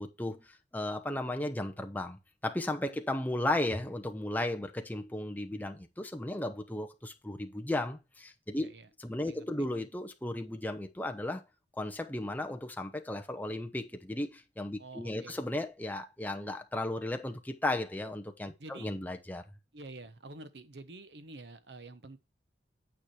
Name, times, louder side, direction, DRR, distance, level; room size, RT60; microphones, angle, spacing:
voice 1, 0.0-8.7 9.0-11.4 11.7-19.4, left 1 dB, 10° left, 0.8 m, -35 dB
voice 2, 8.5-8.9 9.3-9.7 14.8-15.4 18.6-18.9 19.7-22.2, right 2 dB, 70° right, 0.9 m, -48 dB
9.0 x 5.0 x 4.3 m
head